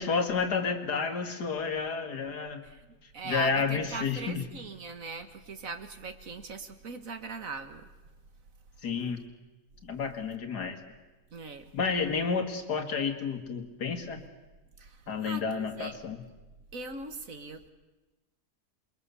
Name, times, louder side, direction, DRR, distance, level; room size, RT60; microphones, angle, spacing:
voice 1, 0.0-2.6 3.2-4.4 8.8-9.2 9.8-10.8 11.7-14.2 15.1-16.2, left 5 dB, 80° left, 6 dB, 2.6 m, -30 dB
voice 2, 3.1-7.9 10.0-10.1 11.3-11.7 14.8-15.9 16.7-17.7, right 4 dB, 55° right, 8 dB, 1.9 m, -40 dB
27.5 x 22.5 x 6.9 m, 1.1 s
omnidirectional pair, 1.7 m